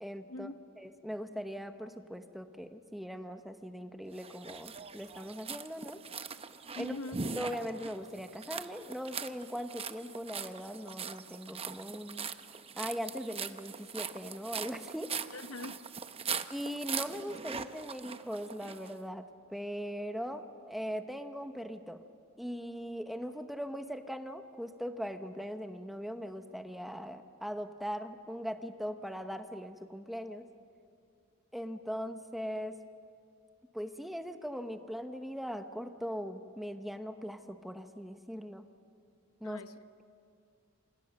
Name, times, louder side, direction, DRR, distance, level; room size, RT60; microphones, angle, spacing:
voice 1, 0.0-0.5 0.8-6.0 6.8-7.0 7.4-12.3 12.8-15.1 16.5-22.0 22.4-30.5 31.5-32.8 33.7-38.7 39.4-39.6, equal, ahead, 1.0 m, -40 dB
sound 1, 4.2-18.9, right 6 dB, 30° right, 0.8 m, -41 dB
voice 2, 6.8-7.2 15.3-15.9 39.4-39.7, left 2 dB, 80° left, 0.9 m, -42 dB
27.5 x 27.0 x 6.5 m
head